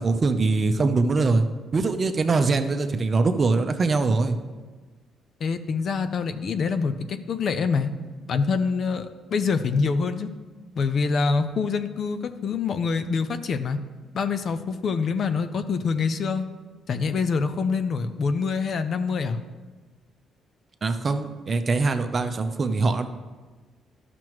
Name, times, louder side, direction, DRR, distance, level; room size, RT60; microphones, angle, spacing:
voice 1, 0.0-1.4 1.7-4.4 20.8-23.1, right 3 dB, 40° right, 8 dB, 0.6 m, -22 dB
voice 2, 5.4-7.9 8.3-10.3 10.8-13.8 14.1-16.4 16.9-19.4, left 5 dB, 55° left, 10 dB, 0.5 m, -25 dB
12.0 x 6.0 x 3.1 m, 1.3 s
cardioid pair, 90°, 0 cm